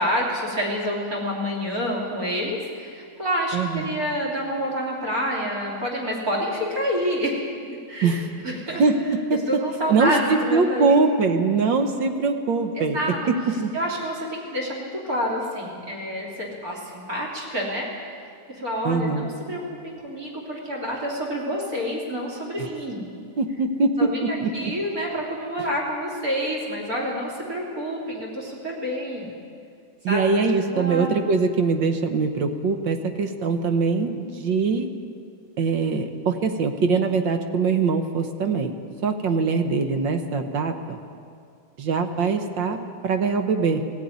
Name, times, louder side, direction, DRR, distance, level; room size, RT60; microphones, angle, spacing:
voice 1, 0.0-7.4 7.9-8.8 9.5-10.9 12.8-13.2 13.7-17.9 18.6-23.1 24.0-29.3 30.1-30.2 30.7-31.1, equal, 45° right, -1 dB, 3.8 m, -28 dB
voice 2, 3.5-4.0 8.0-8.3 8.8-9.4 9.9-13.7 18.8-19.3 23.4-24.7 30.0-34.9 35.6-38.7 39.0-41.0 41.8-42.8 43.0-43.8, right 4 dB, 65° right, 7 dB, 1.9 m, -22 dB
17.0 x 16.5 x 9.5 m, 2.3 s
omnidirectional pair, 2.2 m